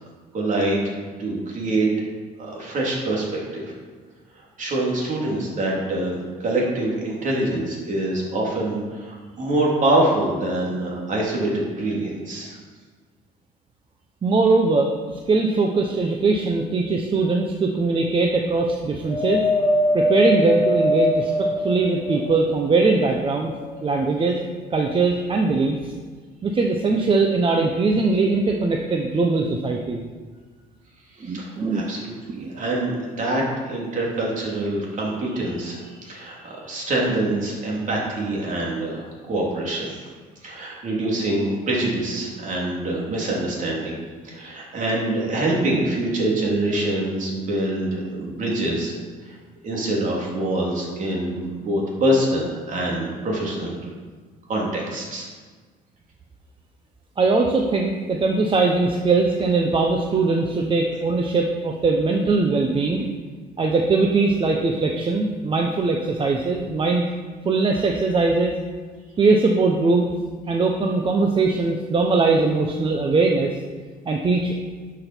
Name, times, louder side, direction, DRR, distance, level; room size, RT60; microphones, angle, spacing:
voice 1, 0.3-1.9 2.4-3.7 4.6-12.6 31.2-40.0 40.4-44.0 44.2-48.9 49.2-49.4 49.6-53.8 54.5-55.3, right 1 dB, 50° right, -3 dB, 3.2 m, -25 dB
voice 2, 14.2-15.0 15.3-19.4 19.9-23.5 23.8-24.4 24.7-25.9 26.4-30.0 31.2-31.8 32.3-32.5 57.2-63.1 63.6-67.0 67.4-68.6 69.2-70.0 70.5-73.5 74.1-74.5, right 3 dB, 30° right, 2 dB, 0.9 m, -21 dB
Wind, 19.1-22.6 23.2-24.2 25.0-25.1, left 1 dB, 15° left, 1.9 m, -23 dB
12.0 x 6.4 x 4.5 m, 1.5 s
cardioid pair, 110°, 17 cm